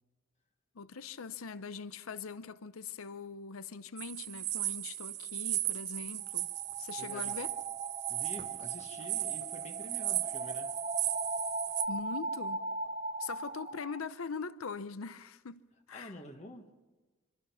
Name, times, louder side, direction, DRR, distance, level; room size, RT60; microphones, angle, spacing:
voice 1, 0.7-6.5 6.8-7.5 11.9-12.6 13.2-15.6 15.9-16.2, left 5 dB, 90° left, 0.7 m, -42 dB
sound 1, 4.0-11.8, right 14 dB, 55° right, 1.0 m, -36 dB
sound 2, 6.2-14.0, right 2 dB, 30° right, 0.8 m, -39 dB
voice 2, 7.0-7.4 8.1-10.7 15.9-16.7, left 1 dB, 35° left, 1.4 m, -48 dB
25.5 x 25.0 x 5.7 m
head